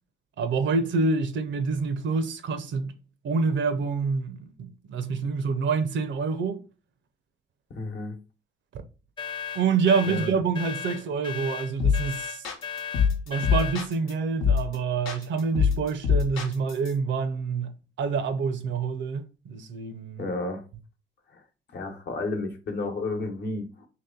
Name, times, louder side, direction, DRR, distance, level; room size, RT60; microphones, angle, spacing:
voice 1, 0.4-2.9 3.2-6.6 8.7-8.8 9.5-12.4 13.3-20.2, right 5 dB, 70° right, 0.6 m, -27 dB
voice 2, 7.7-8.2 10.1-10.3 20.2-20.6 21.3-21.4 21.7-23.9, left 2 dB, 60° left, 1.0 m, -32 dB
sound 1, 9.2-13.8, left 8 dB, 25° left, 0.3 m, -36 dB
sound 2, 11.8-12.1 12.4-14.1 14.4-14.8 15.1-16.9, left 6 dB, 85° left, 0.9 m, -24 dB
3.1 x 2.9 x 3.7 m
cardioid pair, 90°, 20 cm